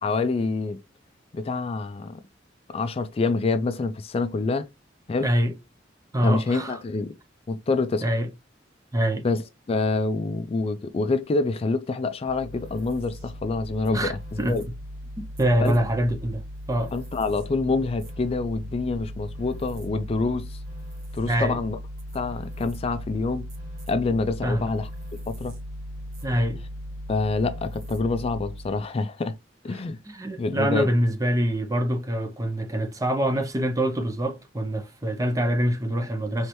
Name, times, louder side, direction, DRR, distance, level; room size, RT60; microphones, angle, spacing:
voice 1, 0.0-0.8 1.3-2.2 2.7-4.7 5.1-5.3 6.2-7.2 7.5-8.1 9.2-14.7 15.6-15.8 16.9-20.6 21.1-21.8 22.1-23.5 23.9-24.9 25.3-25.6 27.1-29.3 29.6-30.0 30.4-30.9, left 3 dB, 35° left, 0.3 m, -26 dB
voice 2, 5.2-5.5 6.1-6.8 8.0-8.3 8.9-9.3 13.9-14.1 14.4-14.6 15.4-16.4 16.7-16.9 21.3-21.6 24.4-24.7 26.2-26.6 29.7-36.5, equal, 20° right, 0.6 m, -25 dB
sound 1, 12.3-28.8, equal, 55° right, 2.1 m, -38 dB
4.5 x 3.2 x 3.0 m
head